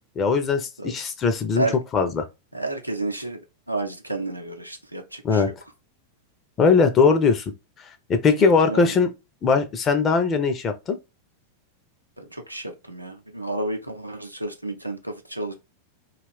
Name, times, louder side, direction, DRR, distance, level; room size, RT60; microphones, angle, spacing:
voice 1, 0.2-1.7 1.9-2.2 5.2-5.5 6.6-7.4 8.1-9.1 9.4-11.0, left 5 dB, 25° left, 0.5 m, -20 dB
voice 2, 2.5-3.4 3.7-5.5 8.6-8.9 12.2-15.5, right 2 dB, 90° right, 0.5 m, -31 dB
2.4 x 2.4 x 3.3 m
figure-of-eight pair, 90°, 0 cm